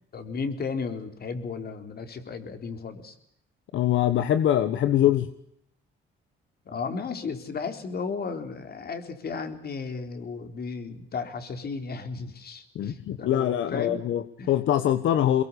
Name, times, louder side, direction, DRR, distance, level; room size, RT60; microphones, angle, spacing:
voice 1, 0.1-3.2 6.6-14.0 14.4-14.5, left 5 dB, 50° left, 7 dB, 4.0 m, -34 dB
voice 2, 3.7-5.3 12.7-15.4, left 11 dB, 80° left, 11 dB, 1.3 m, -23 dB
23.5 x 21.5 x 8.4 m, 0.74 s
cardioid pair, 90°, 20 cm